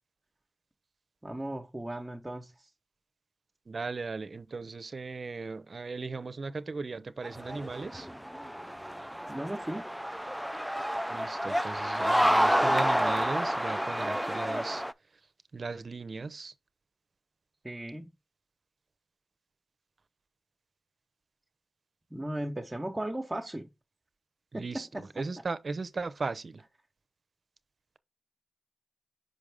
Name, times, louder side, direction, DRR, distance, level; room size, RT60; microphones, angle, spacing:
voice 1, 1.2-2.7 9.3-9.9 17.6-18.1 22.1-23.7 24.5-25.2, right 1 dB, 20° right, 1.0 m, -37 dB
voice 2, 3.7-8.1 11.1-14.8 15.5-16.5 24.5-24.9 25.2-26.6, right 4 dB, 60° right, 0.6 m, -37 dB
sound 1, 7.2-14.9, equal, 5° right, 0.3 m, -29 dB
5.4 x 5.1 x 3.4 m
cardioid pair, 50°, 0 cm